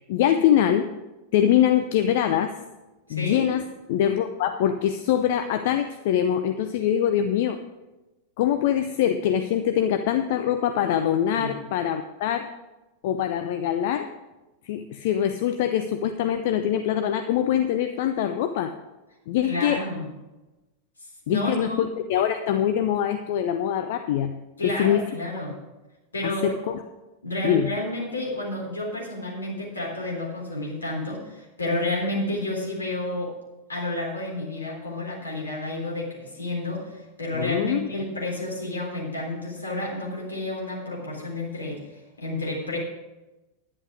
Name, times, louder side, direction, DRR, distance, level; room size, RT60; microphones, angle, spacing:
voice 1, 0.1-0.9 1.3-2.5 3.1-7.6 8.4-12.5 13.0-14.1 14.6-18.7 19.3-19.8 21.3-24.4 24.6-25.1 26.2-26.8 27.4-27.7 37.3-37.9, left 10 dB, 50° left, 8 dB, 0.6 m, -23 dB
voice 2, 3.1-3.4 11.3-11.5 19.4-20.1 21.3-21.8 24.6-25.6 26.1-26.5 27.2-33.3 33.7-41.9 42.2-42.8, left 1 dB, 75° left, -2 dB, 3.7 m, -30 dB
11.0 x 9.9 x 4.9 m, 1.1 s
figure-of-eight pair, 90°, 0 cm